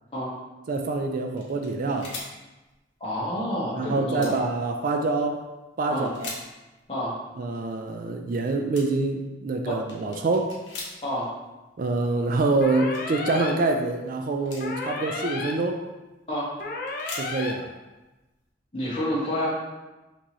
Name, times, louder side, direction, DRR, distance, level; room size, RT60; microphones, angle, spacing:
voice 1, 0.7-2.2 3.8-5.5 5.8-6.3 7.4-10.6 11.8-15.8 17.1-17.7, right 3 dB, 45° right, 4 dB, 0.3 m, -26 dB
sound 1, 1.3-2.8 3.1-3.2 3.4-3.6 4.0-4.5 5.2-5.5 6.0-6.8 7.4-7.8 8.4-8.5 8.7-9.2 9.6-11.3 11.7-11.8 12.0-13.1 13.7-14.8 15.5-16.3 16.6-18.5, left 3 dB, 70° left, 1.2 m, -41 dB
voice 2, 3.0-4.3 5.9-6.1 6.9-7.2 11.0-11.3 16.3-16.5 18.7-19.5, equal, 30° left, -7 dB, 1.4 m, -28 dB
sound 2, 12.6-13.5 14.6-15.5 16.6-17.5, left 3 dB, 50° left, 0.5 m, -33 dB
5.9 x 2.9 x 3.0 m, 1.1 s
head